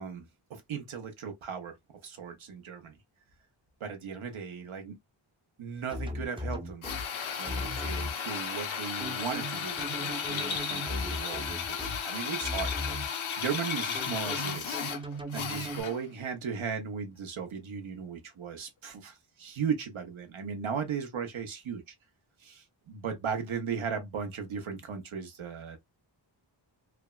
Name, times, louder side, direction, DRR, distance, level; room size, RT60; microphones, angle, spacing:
voice 1, 0.0-1.8 2.0-3.0 3.8-5.0 5.6-6.9 7.4-14.8 15.3-21.8 22.4-25.8, right 6 dB, 80° right, 0.8 m, -37 dB
sound 1, 5.9-7.0 7.4-8.1 9.0-12.0 12.4-13.1 13.9-15.8, equal, 10° right, 0.5 m, -37 dB
Drill, 6.8-16.1, left 7 dB, 80° left, 0.7 m, -34 dB
3.3 x 2.1 x 2.2 m
wide cardioid pair, 105°, 47 cm